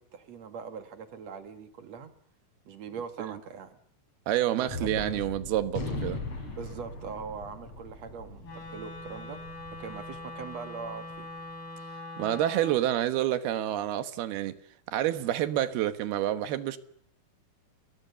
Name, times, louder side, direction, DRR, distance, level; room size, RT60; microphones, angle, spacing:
voice 1, 0.1-2.1 2.7-3.8 4.6-5.2 6.5-9.4 9.7-11.3, right 6 dB, 50° right, 2.5 m, -41 dB
voice 2, 4.3-6.2 12.2-14.6 14.9-16.8, right 12 dB, 80° right, 3.3 m, -28 dB
Gunshot gunfire, 4.7-11.2, left 3 dB, 40° left, 5.2 m, -40 dB
Wind instrument woodwind instrument, 8.4-12.8, left 2 dB, 75° left, 8.3 m, -42 dB
29.5 x 22.5 x 7.0 m
omnidirectional pair, 4.5 m